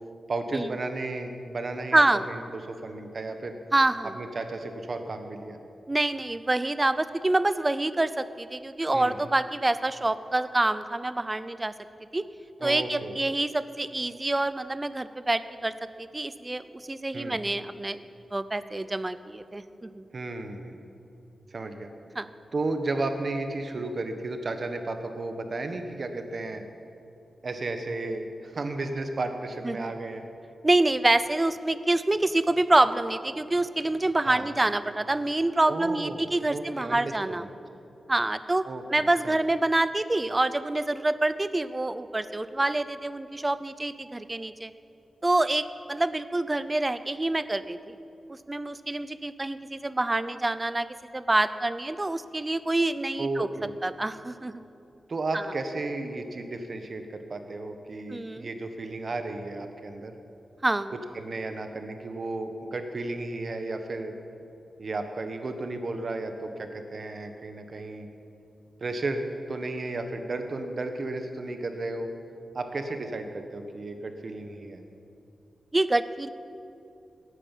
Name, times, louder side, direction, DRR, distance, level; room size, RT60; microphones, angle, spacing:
voice 1, 0.3-2.4 2.7-3.6 4.1-5.6 8.9-9.2 12.6-13.3 17.1-17.4 20.1-20.8 21.5-21.9 22.5-26.6 27.4-30.3 34.2-34.4 35.7-37.6 38.6-38.8 39.2-39.4 53.2-54.0 55.1-60.1 61.1-64.1 64.8-68.1 68.8-72.1 72.5-74.8, right 2 dB, 50° right, 6 dB, 1.4 m, -33 dB
voice 2, 1.9-2.2 3.7-4.1 5.9-11.7 12.1-12.2 12.6-15.7 16.0-18.0 18.3-20.0 22.2-22.3 29.6-29.9 30.6-37.5 38.1-44.7 45.2-48.0 48.3-50.9 51.1-53.5 53.8-54.6 55.3-55.4 58.1-58.5 60.6-60.9 75.7-76.3, right 2 dB, 20° right, 14 dB, 0.6 m, -26 dB
17.5 x 9.9 x 7.4 m, 2.7 s
wide cardioid pair, 95°, 0 cm